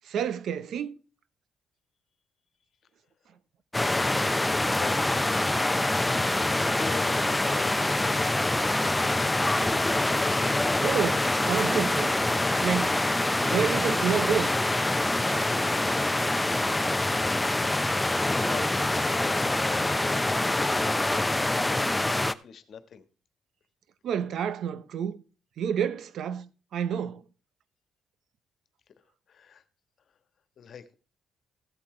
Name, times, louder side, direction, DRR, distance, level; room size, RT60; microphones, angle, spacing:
voice 1, 0.0-1.0 10.8-12.1 12.6-13.0 13.4-14.5 24.0-25.2 25.6-27.2, right 8 dB, 70° right, 0.9 m, -29 dB
sound 1, 3.7-22.3, left 2 dB, 10° left, 0.7 m, -25 dB
voice 2, 4.6-5.1 5.9-9.6 17.0-17.5 18.3-23.0 29.3-29.6 30.6-30.9, left 6 dB, 60° left, 1.4 m, -43 dB
sound 2, 6.1-21.8, right 1 dB, 20° right, 1.6 m, -51 dB
15.0 x 8.6 x 3.2 m
cardioid pair, 90°, 0 cm